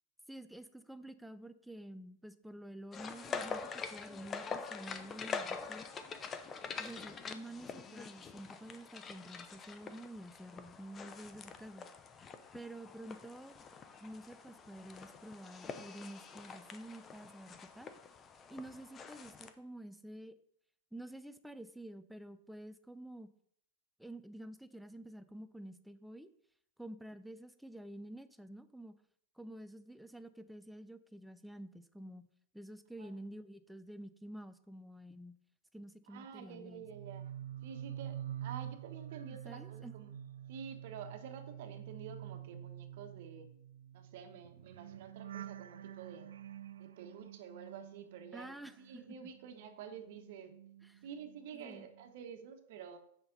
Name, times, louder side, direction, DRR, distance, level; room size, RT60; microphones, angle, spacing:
voice 1, 0.3-5.9 6.8-11.9 12.5-13.6 14.0-17.9 18.5-20.4 20.9-23.3 24.0-26.3 26.8-28.9 29.4-32.3 32.5-35.4 35.7-36.8 39.4-40.0 48.3-49.3 50.8-51.0 51.5-51.8, right 1 dB, ahead, 11 dB, 0.6 m, -49 dB
sound 1, 2.9-19.5, left 5 dB, 25° left, 0.8 m, -45 dB
voice 2, 36.1-37.3 37.6-40.1 40.5-43.5 43.9-46.3 46.8-50.5 51.0-53.0, right 7 dB, 60° right, 6 dB, 1.4 m, -49 dB
sound 2, 36.8-49.0 49.3-51.4 51.7-52.1, right 11 dB, 80° right, 0.5 m, -48 dB
6.9 x 5.8 x 5.3 m, 0.67 s
hypercardioid pair, 115°, 0 cm